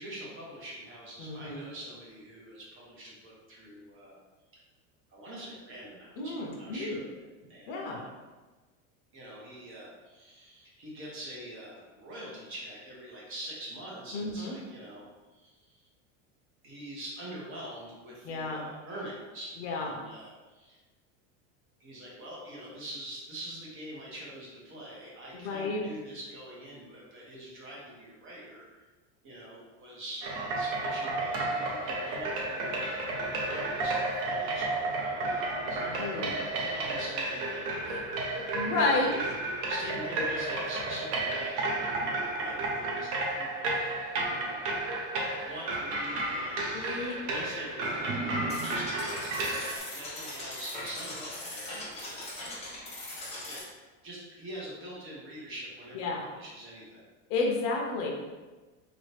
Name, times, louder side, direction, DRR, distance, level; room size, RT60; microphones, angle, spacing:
voice 1, 0.0-4.2 5.1-8.1 9.1-15.9 16.6-20.8 21.8-28.8 29.2-30.3 30.5-32.8 33.3-37.7 38.8-44.8 45.4-46.7 47.2-52.5 53.5-53.6 54.0-57.0, right 1 dB, 30° right, -5 dB, 1.2 m, -45 dB
voice 2, 1.2-1.6 6.2-7.0 7.7-8.0 14.1-14.5 18.2-18.6 19.6-19.9 25.3-25.8 35.8-36.3 37.9-38.0 38.5-39.1 46.7-47.2 55.9-56.2 57.3-58.1, left 3 dB, 55° left, -1 dB, 0.9 m, -31 dB
sound 1, 30.2-49.8, right 2 dB, 55° right, 0.8 m, -32 dB
sound 2, 48.5-53.6, left 1 dB, 15° left, 1.0 m, -40 dB
3.9 x 3.0 x 3.3 m, 1.3 s
supercardioid pair, 150°, 39 cm